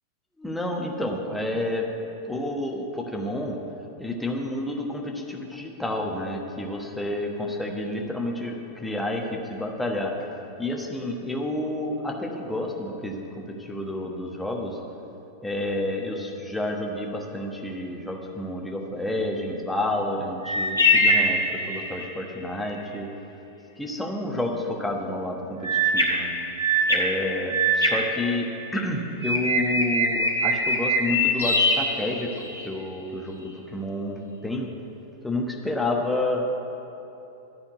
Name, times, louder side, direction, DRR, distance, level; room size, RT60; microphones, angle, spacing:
voice 1, 0.4-1.9 2.2-3.6 4.0-10.1 10.6-14.8 15.4-21.4 21.7-23.1 23.8-26.3 26.9-32.3 32.6-34.7 35.2-36.4, left 1 dB, 5° left, 0 dB, 1.2 m, -30 dB
sound 1, 20.4-22.2 25.6-28.8 29.2-32.7, equal, 80° left, 1.4 m, -23 dB
12.5 x 4.3 x 8.0 m, 2.9 s
figure-of-eight pair, 90°, 0 cm